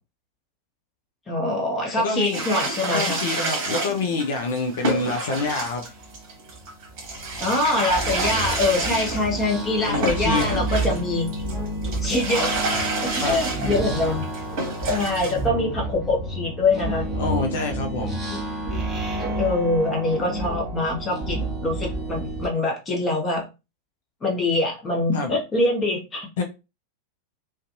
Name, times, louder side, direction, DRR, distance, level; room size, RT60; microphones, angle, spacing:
voice 1, 1.3-3.2 7.4-11.3 12.0-14.2 14.9-17.1 18.3-18.4 19.4-23.4 24.2-26.3, left 2 dB, 20° left, 1.0 m, -24 dB
voice 2, 2.0-2.4 2.9-5.9 9.8-10.6 13.2-13.4 17.2-18.2 25.1-25.4 26.4-26.5, left 3 dB, 55° left, 0.5 m, -26 dB
sound 1, 2.3-11.0 11.3-15.4, right 2 dB, 45° right, 1.0 m, -29 dB
sound 2, 5.9-22.5, right 1 dB, ahead, 1.0 m, -30 dB
2.5 x 2.3 x 2.6 m
figure-of-eight pair, 90°, 0 cm